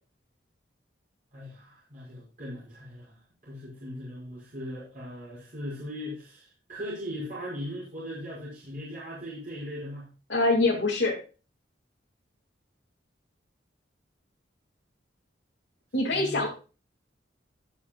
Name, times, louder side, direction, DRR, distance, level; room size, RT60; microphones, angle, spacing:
voice 1, 1.3-10.1 16.1-16.5, equal, 50° right, -8 dB, 5.6 m, -39 dB
voice 2, 10.3-11.2 15.9-16.5, left 2 dB, 80° left, -4 dB, 2.4 m, -24 dB
19.5 x 6.7 x 2.3 m, 0.34 s
head